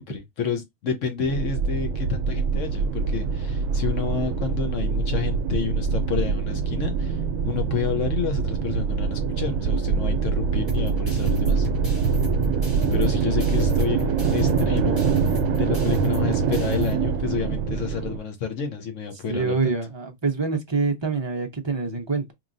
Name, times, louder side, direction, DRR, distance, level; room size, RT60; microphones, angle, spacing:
voice 1, 0.0-7.2 7.4-11.7 12.9-19.8, left 6 dB, 65° left, 1.2 m, -30 dB
sound 1, 1.3-18.2, right 6 dB, 75° right, 1.0 m, -24 dB
sound 2, 10.7-16.9, left 1 dB, 15° left, 2.0 m, -32 dB
voice 2, 19.3-22.3, right 4 dB, 30° right, 0.5 m, -26 dB
4.4 x 2.9 x 2.6 m
omnidirectional pair, 1.4 m